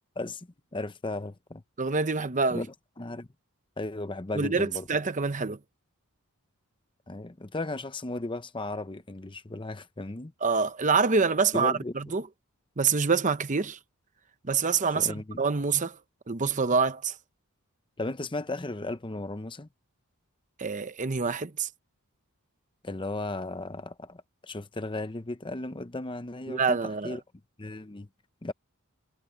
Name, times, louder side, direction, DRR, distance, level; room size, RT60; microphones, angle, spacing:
voice 1, 0.2-1.6 2.5-2.7 3.0-3.3 3.8-4.9 7.1-10.3 11.5-11.9 14.9-15.4 18.0-19.7 22.8-26.8 27.0-27.2 27.6-28.1 28.4-28.5, left 2 dB, 20° left, 0.8 m, -35 dB
voice 2, 1.8-2.6 4.3-5.6 10.4-12.3 12.8-13.8 14.4-16.0 16.3-17.1 20.6-21.7 26.5-27.2, right 5 dB, 35° right, 0.8 m, -26 dB
head